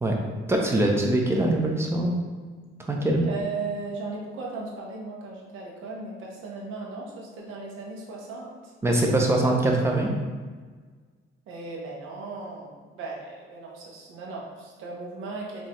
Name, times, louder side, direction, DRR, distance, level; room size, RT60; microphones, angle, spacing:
voice 1, 0.5-2.2 2.9-3.3 8.8-10.1, right 1 dB, 15° right, 1 dB, 0.4 m, -23 dB
voice 2, 3.2-8.7 11.5-15.7, right 3 dB, 85° right, -2 dB, 1.1 m, -37 dB
5.3 x 2.7 x 3.1 m, 1.5 s
cardioid pair, 175°, 20 cm